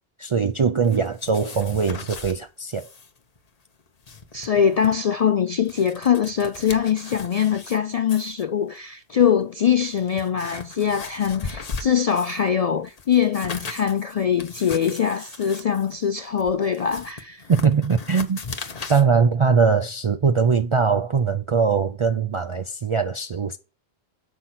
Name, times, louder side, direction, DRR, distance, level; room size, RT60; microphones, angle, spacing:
voice 1, 0.2-2.9 17.5-18.4 18.9-23.6, right 5 dB, 55° right, 0.3 m, -21 dB
sound 1, 0.8-2.4 2.7-3.1 3.4-3.5 3.9-5.0 5.5-7.8 8.1-8.4 9.2-9.3 9.8-12.5 12.8-19.0, left 4 dB, 40° left, 0.9 m, -37 dB
voice 2, 4.3-17.5, left 8 dB, 60° left, 0.4 m, -22 dB
7.8 x 5.7 x 4.2 m
omnidirectional pair, 1.1 m